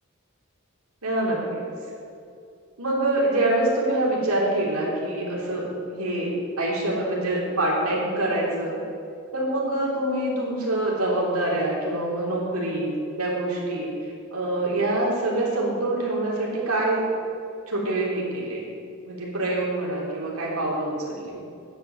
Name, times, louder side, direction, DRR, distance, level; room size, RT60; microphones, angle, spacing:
voice 1, 1.0-1.6 2.8-6.3 6.6-8.8 9.3-17.0 17.7-18.6 19.0-21.4, right 1 dB, 85° right, -4 dB, 3.3 m, -25 dB
10.0 x 8.4 x 7.9 m, 2.5 s
head